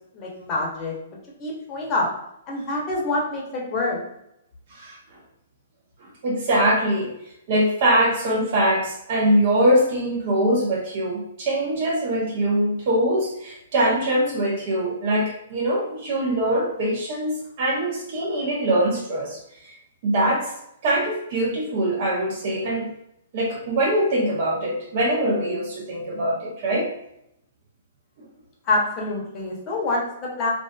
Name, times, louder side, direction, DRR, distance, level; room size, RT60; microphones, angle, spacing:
voice 1, 0.1-0.9 1.4-2.1 2.5-4.0 28.7-30.5, left 2 dB, 30° left, -2 dB, 0.8 m, -26 dB
voice 2, 6.2-7.1 7.5-19.4 20.0-20.5 20.8-22.9 23.3-26.9, right 1 dB, 50° right, -1 dB, 0.8 m, -22 dB
2.5 x 2.4 x 2.3 m, 0.79 s
hypercardioid pair, 125°, 0 cm